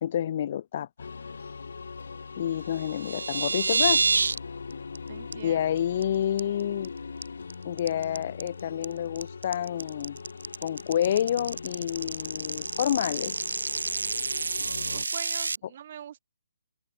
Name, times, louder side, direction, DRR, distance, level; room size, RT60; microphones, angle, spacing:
voice 1, 0.0-0.9 2.4-4.0 5.3-6.9 7.6-10.2 10.6-13.4, left 10 dB, 40° left, 1.4 m, -28 dB
sound 1, 1.0-15.1, left 5 dB, 75° left, 0.8 m, -41 dB
sound 2, 2.7-4.4 4.7-5.0 5.3-5.4 5.8-6.0 6.4-6.9 7.2-15.6, right 4 dB, 85° right, 0.4 m, -29 dB
voice 2, 5.1-5.9 14.9-16.2, right 10 dB, 40° right, 1.6 m, -43 dB
hypercardioid pair, 160°, 0 cm